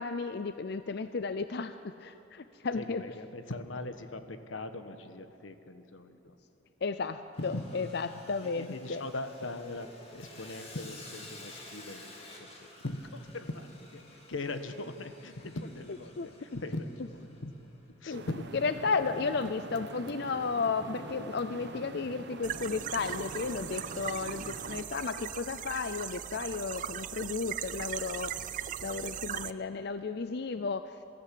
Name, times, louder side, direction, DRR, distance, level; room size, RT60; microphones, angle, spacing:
voice 1, 0.0-3.0 6.8-9.0 16.2-16.3 18.1-18.2 18.6-30.9, left 4 dB, 55° left, 11 dB, 0.5 m, -34 dB
voice 2, 2.7-6.4 7.4-7.6 8.4-12.1 12.4-14.0 14.3-16.1 16.4-17.7 18.0-18.5, left 2 dB, 85° left, 9 dB, 1.3 m, -40 dB
Sawing, 7.3-17.6, left 2 dB, 30° left, 2.8 m, -52 dB
sound 1, 18.1-24.8, right 2 dB, 60° right, 1.0 m, -44 dB
sound 2, 22.4-29.5, right 10 dB, 40° right, 0.4 m, -39 dB
22.0 x 14.0 x 8.4 m, 2.9 s
head